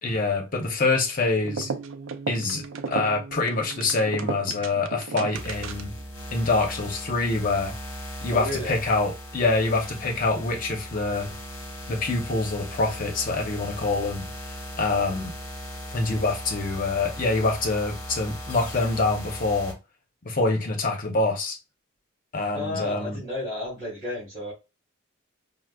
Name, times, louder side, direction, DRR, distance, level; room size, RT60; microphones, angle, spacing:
voice 1, 0.0-1.7 2.3-5.9 6.3-7.7 8.2-11.3 11.9-14.3 14.8-15.3 15.9-19.8 20.2-21.6 22.3-23.2, left 3 dB, 45° left, 0.8 m, -25 dB
sound 1, 1.4-6.0, right 5 dB, 70° right, 0.4 m, -34 dB
sound 2, 5.3-19.7, equal, 15° left, 1.0 m, -38 dB
voice 2, 8.3-8.7 22.5-24.5, left 2 dB, 20° right, 1.6 m, -32 dB
4.7 x 2.1 x 2.3 m
head